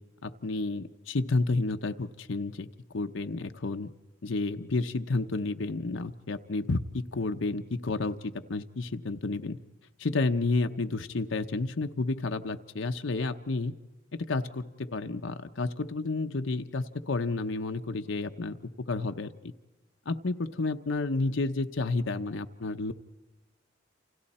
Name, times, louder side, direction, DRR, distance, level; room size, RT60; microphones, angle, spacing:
voice 1, 0.2-2.7 2.9-3.9 4.2-9.6 10.0-13.7 14.1-18.6 18.9-19.5 20.1-22.9, left 3 dB, 75° left, 6 dB, 0.8 m, -31 dB
29.0 x 27.5 x 4.3 m, 1.2 s
head